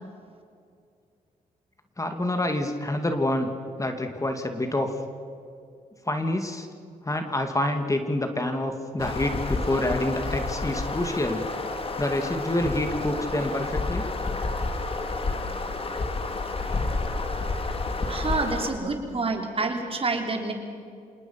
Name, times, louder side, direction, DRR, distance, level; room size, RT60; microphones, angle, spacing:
voice 1, 2.0-3.5 3.8-4.9 6.1-6.7 7.0-11.5 12.0-14.1, left 1 dB, 20° left, 6 dB, 2.3 m, -27 dB
sound 1, 9.0-18.7, left 3 dB, 40° left, 2.7 m, -30 dB
voice 2, 18.1-20.5, right 3 dB, 40° right, 3 dB, 4.0 m, -28 dB
27.5 x 19.0 x 5.9 m, 2.4 s
cardioid pair, 75°, 15 cm